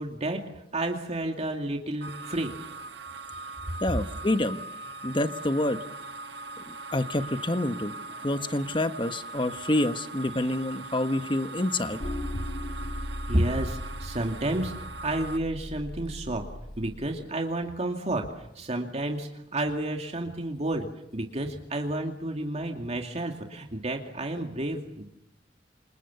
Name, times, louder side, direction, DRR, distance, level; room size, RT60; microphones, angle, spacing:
voice 1, 0.0-2.5 8.3-8.6 13.3-16.4 16.8-25.1, right 1 dB, 35° right, 3 dB, 2.4 m, -31 dB
sound 1, 2.0-15.4, right 3 dB, 70° right, 1.3 m, -41 dB
voice 2, 3.8-4.6 5.0-5.8 6.7-7.9 8.2-12.0, left 1 dB, 30° left, 10 dB, 1.4 m, -27 dB
sound 2, 12.0-17.1, left 1 dB, 45° left, 1.8 m, -37 dB
28.0 x 27.0 x 7.1 m, 0.81 s
head